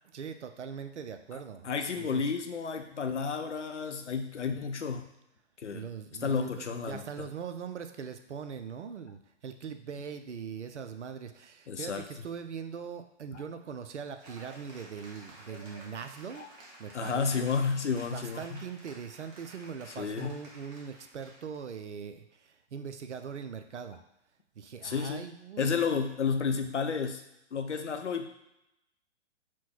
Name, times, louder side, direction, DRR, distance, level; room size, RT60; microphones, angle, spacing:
voice 1, 0.0-1.7 2.0-2.2 5.7-16.5 16.8-17.5 18.0-24.0 24.6-26.0, right 6 dB, 75° right, 8 dB, 0.5 m, -41 dB
voice 2, 1.3-5.1 5.6-5.8 6.2-7.0 11.7-12.0 13.3-13.4 16.4-16.5 16.9-18.6 20.0-20.4 24.8-25.3 25.6-27.2 27.5-28.3, left 5 dB, 80° left, 6 dB, 0.6 m, -31 dB
Cheering / Applause, 14.2-21.7, right 1 dB, 25° right, 0.8 m, -52 dB
4.4 x 2.2 x 4.4 m, 0.87 s
figure-of-eight pair, 115°, 35 cm